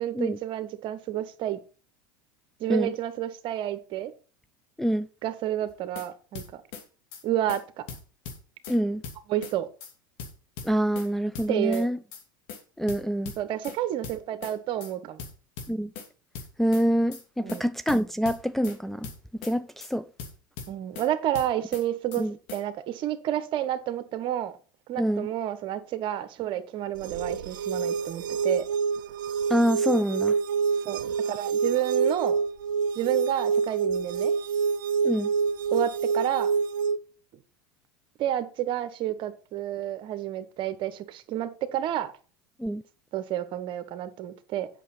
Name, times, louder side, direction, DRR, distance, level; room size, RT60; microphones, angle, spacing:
voice 1, 0.0-1.6 2.6-4.1 5.2-6.6 7.2-7.9 9.3-9.7 11.5-11.9 13.4-15.2 17.4-17.6 20.7-22.3 22.5-24.6 24.9-28.7 30.8-32.4 32.9-34.3 35.7-36.5 38.2-42.1 43.1-44.7, right 12 dB, 50° right, 1.2 m, -30 dB
sound 1, 5.7-6.1 6.3-6.8 7.1-7.2 7.5-7.6 7.9-8.8 9.0-9.5 9.8-9.9 10.2-11.1 11.3-11.8 12.1-12.2 12.5-12.6 12.9-13.8 14.0-14.5 14.8-14.9 15.2-16.1 16.3-16.8 17.1-17.2 17.5-17.6 17.9-18.8 19.0-19.5 19.8-19.9 20.2-21.1 21.3-21.8 22.1-22.2 22.5-22.6, left 6 dB, 65° left, 2.7 m, -40 dB
voice 2, 8.7-9.0 10.6-12.0 12.8-13.3 15.7-15.9 16.6-19.1 19.4-20.1 22.2-22.3 25.0-25.3 29.5-30.4 35.0-35.3 42.6-42.8, equal, ahead, 0.4 m, -26 dB
sound 2, 27.0-37.0, right 5 dB, 80° right, 0.7 m, -27 dB
8.3 x 6.2 x 5.6 m
hypercardioid pair, 90°, 11 cm